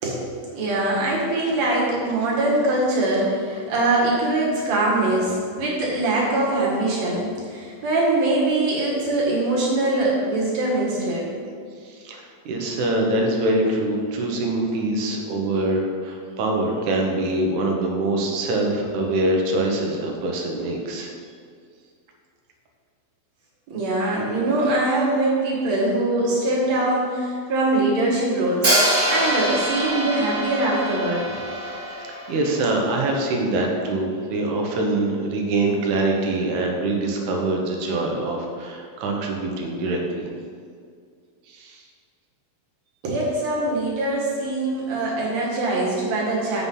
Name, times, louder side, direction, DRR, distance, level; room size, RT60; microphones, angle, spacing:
voice 1, 0.0-11.3 23.7-28.7 29.1-31.2 43.0-46.6, right 2 dB, 60° right, -4 dB, 2.9 m, -22 dB
voice 2, 11.8-21.1 31.5-40.3 41.5-41.8, right 2 dB, 80° right, 1 dB, 2.4 m, -24 dB
Hi-hat, 28.6-32.6, right 1 dB, 25° right, 1.4 m, -24 dB
7.9 x 5.6 x 5.5 m, 2.2 s
omnidirectional pair, 3.5 m